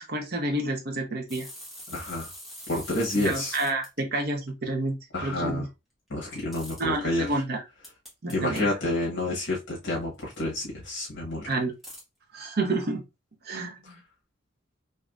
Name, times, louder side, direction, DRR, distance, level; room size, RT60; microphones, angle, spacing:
voice 1, 0.1-1.5 3.1-5.7 6.8-7.6 8.2-8.6 11.5-11.7 12.3-13.0 13.4-13.8, right 2 dB, 55° right, 0.8 m, -29 dB
sound 1, 1.3-3.9 6.5-6.8 7.8-8.6 10.2-10.4 11.8-12.0, equal, ahead, 1.2 m, -43 dB
voice 2, 1.9-2.3 2.7-3.6 5.1-5.7 6.1-7.3 8.3-11.5 13.8-13.9, left 2 dB, 65° left, 1.2 m, -29 dB
3.5 x 2.7 x 2.4 m
head